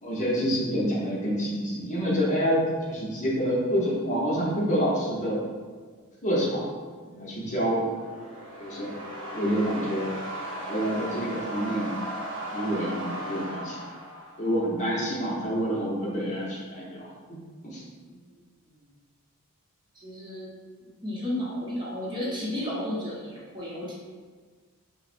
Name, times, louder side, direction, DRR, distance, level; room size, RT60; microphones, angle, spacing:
voice 1, 0.0-5.4 6.2-6.7 7.2-7.9 8.6-8.9 9.3-10.1 10.4-11.9 12.5-13.8 14.4-17.1 17.6-17.8, equal, 35° left, -5 dB, 0.8 m, -27 dB
voice 2, 7.0-7.4 18.1-18.2 18.7-18.8 19.9-20.5 20.8-23.9, left 1 dB, 20° right, -7 dB, 0.8 m, -33 dB
sound 1, 7.7-14.7, right 1 dB, 60° right, 0.8 m, -37 dB
5.7 x 2.0 x 2.5 m, 1.5 s
head